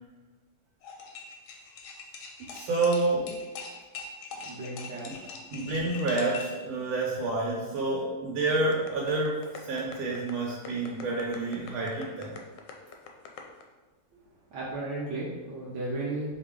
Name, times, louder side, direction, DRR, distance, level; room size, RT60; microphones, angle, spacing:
sound 1, 0.8-6.6, left 4 dB, 90° left, 1.5 m, -42 dB
voice 1, 2.4-3.4 5.1-5.2 5.5-12.3, right 2 dB, 90° right, -4 dB, 1.6 m, -29 dB
voice 2, 4.4-5.3 14.5-16.4, right 2 dB, 65° right, -7 dB, 1.3 m, -35 dB
sound 2, 8.7-13.6, left 7 dB, 75° left, 1.0 m, -44 dB
4.9 x 2.1 x 3.6 m, 1.2 s
omnidirectional pair, 2.2 m